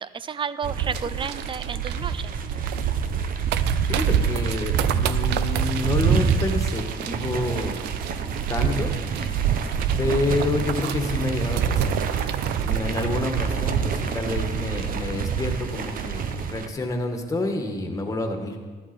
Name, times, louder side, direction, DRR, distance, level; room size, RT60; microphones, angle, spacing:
voice 1, 0.0-2.3 9.2-9.5, right 6 dB, 30° right, 16 dB, 0.5 m, -32 dB
sound 1, 0.6-16.7, right 7 dB, 55° right, 0.9 m, -26 dB
sound 2, 0.9-14.7 15.0-15.1 15.4-15.7 16.1-16.2, right 12 dB, 80° right, 0.5 m, -35 dB
voice 2, 3.9-7.8 8.3-8.9 10.0-11.9 12.6-18.6, left 2 dB, 20° left, 4 dB, 1.7 m, -28 dB
14.0 x 11.0 x 4.4 m, 1.5 s
cardioid pair, 110°, 17 cm